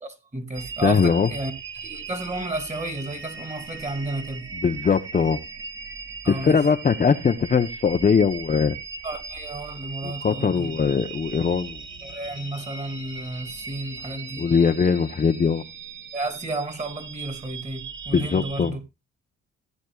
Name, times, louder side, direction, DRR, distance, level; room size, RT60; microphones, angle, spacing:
voice 1, 0.0-4.4 6.2-6.6 9.0-10.7 12.0-14.5 16.1-18.8, right 2 dB, 25° right, 2.6 m, -32 dB
sound 1, 0.5-18.7, right 5 dB, 40° right, 2.1 m, -39 dB
voice 2, 0.8-1.3 4.6-5.4 6.3-8.8 10.0-11.8 14.4-15.6 18.1-18.8, left 6 dB, 25° left, 0.7 m, -21 dB
16.5 x 9.3 x 2.3 m
cardioid pair, 90°, 30 cm